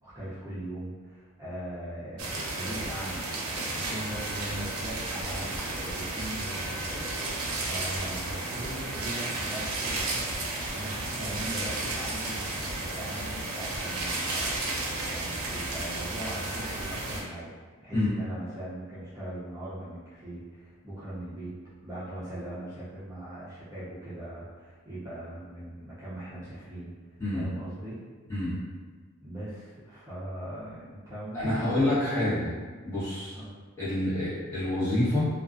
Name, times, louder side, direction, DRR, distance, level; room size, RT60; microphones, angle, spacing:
voice 1, 0.0-21.5 21.8-27.0 27.3-28.0 29.2-32.1 33.3-33.5, right 1 dB, 15° right, -12 dB, 0.6 m, -40 dB
sound 1, 2.2-17.2, right 2 dB, 80° right, 0.5 m, -33 dB
voice 2, 31.3-32.5 32.8-33.4 33.8-35.3, left 1 dB, 15° left, -13 dB, 1.1 m, -27 dB
2.4 x 2.3 x 2.4 m, 1.4 s
head